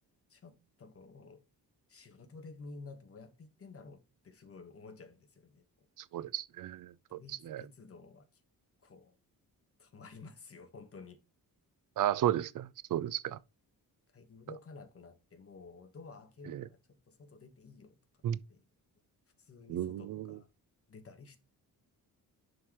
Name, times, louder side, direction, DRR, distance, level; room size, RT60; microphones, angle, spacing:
voice 1, 0.3-1.4 1.9-5.6 7.1-8.2 8.8-9.1 9.8-11.2 14.1-16.8 17.1-18.0 18.5-18.6 19.4-20.5 20.9-21.4, left 4 dB, 40° left, 1.3 m, -52 dB
voice 2, 6.1-7.6 12.0-13.4 16.5-16.6 18.2-18.4 19.7-20.4, right 11 dB, 60° right, 0.5 m, -34 dB
11.0 x 3.9 x 3.0 m
wide cardioid pair, 145°, 37 cm